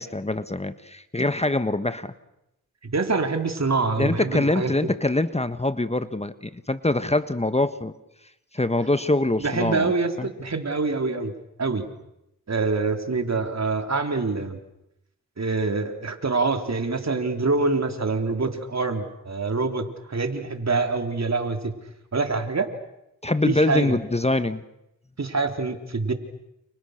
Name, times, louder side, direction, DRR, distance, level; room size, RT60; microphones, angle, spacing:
voice 1, 0.0-2.1 4.0-7.9 8.5-9.9 10.2-10.3 23.2-24.6, left 2 dB, 20° left, 11 dB, 1.4 m, -24 dB
voice 2, 2.9-4.7 9.4-11.3 11.6-11.9 12.5-14.6 15.4-21.7 22.1-22.7 23.5-24.0 25.2-26.1, right 3 dB, 50° right, 5 dB, 3.7 m, -25 dB
29.5 x 29.5 x 6.6 m, 0.86 s
cardioid pair, 60°, 35 cm